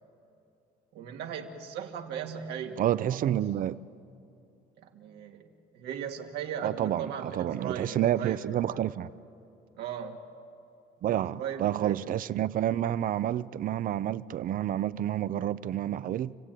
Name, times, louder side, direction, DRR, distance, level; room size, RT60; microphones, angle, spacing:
voice 1, 0.9-2.8 3.1-3.6 4.8-5.4 5.7-8.8 9.8-10.2 11.1-12.0, right 8 dB, 80° right, 2.1 m, -38 dB
voice 2, 2.8-3.8 6.6-9.1 11.0-16.3, right 11 dB, 55° right, 0.6 m, -29 dB
28.5 x 16.5 x 9.1 m
cardioid pair, 110°, 17 cm